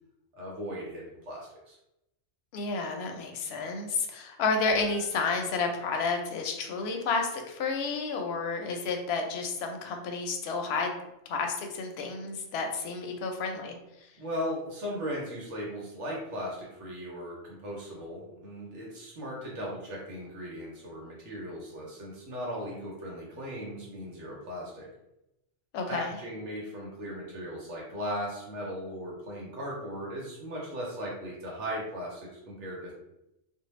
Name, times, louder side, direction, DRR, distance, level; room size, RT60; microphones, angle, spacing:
voice 1, 0.3-1.8 14.2-24.9 25.9-32.9, equal, 75° right, -3 dB, 1.1 m, -37 dB
voice 2, 2.5-11.0 11.3-13.7 25.7-26.1, left 4 dB, 65° left, 4 dB, 0.7 m, -31 dB
sound 1, 4.7-8.8, right 1 dB, 40° right, 0.5 m, -52 dB
2.6 x 2.0 x 3.0 m, 0.89 s
omnidirectional pair, 1.2 m